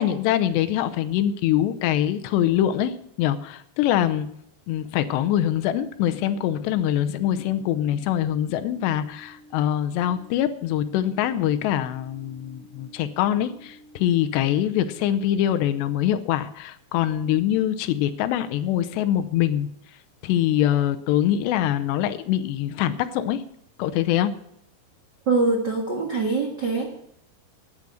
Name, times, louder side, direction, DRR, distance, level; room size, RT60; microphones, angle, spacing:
voice 1, 0.0-4.3 4.7-19.7 20.2-23.4 23.8-24.3, left 11 dB, 85° left, 11 dB, 2.9 m, -24 dB
sound 1, 5.8-15.8, equal, 35° right, 6.3 m, -51 dB
voice 2, 25.3-26.9, right 3 dB, 60° right, 1 dB, 1.1 m, -23 dB
12.0 x 10.0 x 6.3 m, 0.72 s
omnidirectional pair, 5.0 m